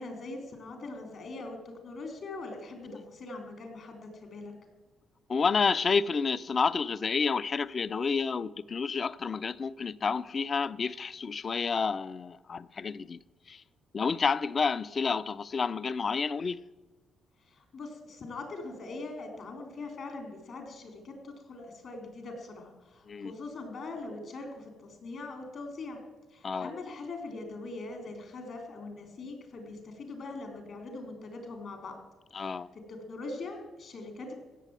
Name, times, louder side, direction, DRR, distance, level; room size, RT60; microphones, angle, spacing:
voice 1, 0.0-4.5 17.4-26.0 26.3-32.0 32.3-34.3, left 3 dB, 60° left, 3.9 m, -42 dB
voice 2, 5.3-13.2 13.5-13.6 13.9-16.6 23.1-23.3 26.4-26.7 32.3-32.7, left 5 dB, 40° left, 0.5 m, -29 dB
16.0 x 7.5 x 9.1 m
cardioid pair, 90°, 0 cm